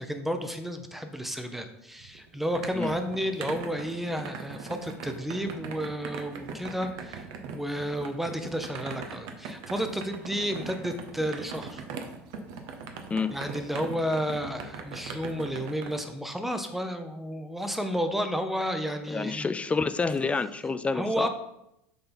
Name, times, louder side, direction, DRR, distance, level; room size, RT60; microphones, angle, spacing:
voice 1, 0.0-7.3 7.5-11.8 13.3-19.5 20.9-21.3, equal, 5° right, 7 dB, 0.8 m, -31 dB
sound 1, 2.0-16.0, right 5 dB, 65° right, 0.9 m, -41 dB
voice 2, 19.1-21.3, left 4 dB, 15° left, 13 dB, 0.4 m, -28 dB
7.0 x 3.8 x 3.9 m, 0.83 s
hypercardioid pair, 90°, 7 cm